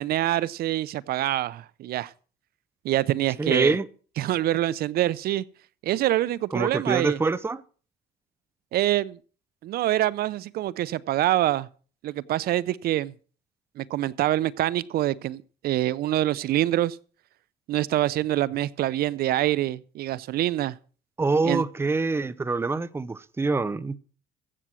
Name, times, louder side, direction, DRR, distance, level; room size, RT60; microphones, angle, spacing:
voice 1, 0.0-2.1 2.8-3.8 4.2-5.4 5.8-7.2 8.7-9.2 9.6-11.7 12.0-13.1 13.8-17.0 17.7-20.8 21.4-21.6, right 14 dB, 65° right, 0.6 m, -25 dB
voice 2, 3.4-3.9 6.5-7.6 21.2-24.0, right 3 dB, 15° right, 0.7 m, -25 dB
15.0 x 8.1 x 6.1 m
cardioid pair, 110°, 17 cm